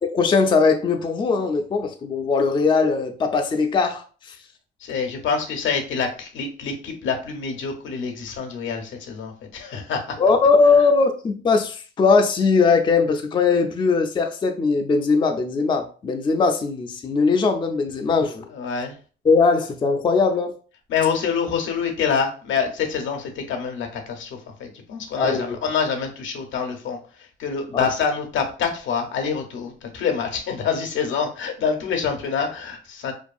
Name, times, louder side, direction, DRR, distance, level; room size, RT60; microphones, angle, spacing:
voice 1, 0.1-4.3 10.2-18.5 19.3-20.6 25.2-25.6 27.7-27.9, left 4 dB, 25° left, 0.4 m, -20 dB
voice 2, 4.8-10.2 18.5-19.0 20.9-33.1, left 6 dB, 75° left, 0.7 m, -26 dB
2.6 x 2.3 x 2.3 m
cardioid pair, 90°, 20 cm